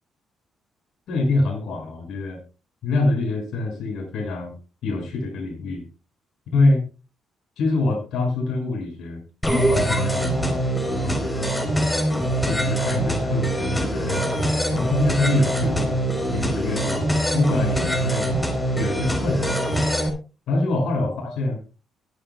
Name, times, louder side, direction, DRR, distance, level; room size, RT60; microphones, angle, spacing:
voice 1, 1.1-2.4 2.8-4.5 4.8-5.9 6.5-6.9 7.6-9.2 9.5-11.3 12.4-14.4 14.7-17.1 17.3-18.4 18.8-19.6 20.5-21.6, left 2 dB, 75° left, 0 dB, 6.1 m, -25 dB
sound 1, 9.4-20.1, right 1 dB, 15° left, 3.8 m, -23 dB
23.0 x 9.3 x 2.3 m, 0.33 s
cardioid pair, 90°, 0 cm